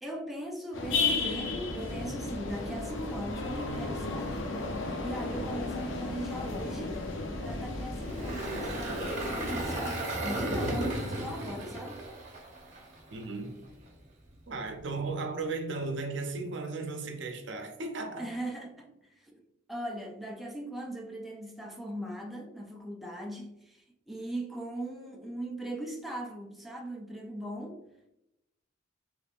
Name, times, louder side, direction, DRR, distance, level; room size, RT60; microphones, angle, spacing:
voice 1, 0.0-4.4 5.0-7.1 7.4-12.1 18.2-19.4 19.7-27.8, right 1 dB, ahead, 0.4 m, -39 dB
sound 1, 0.7-9.7, left 3 dB, 75° left, 0.6 m, -34 dB
Engine, 8.0-13.2, right 1 dB, 40° right, 0.8 m, -34 dB
voice 2, 13.1-13.6 14.5-18.3, right 3 dB, 70° right, 0.6 m, -35 dB
3.4 x 3.2 x 2.4 m
head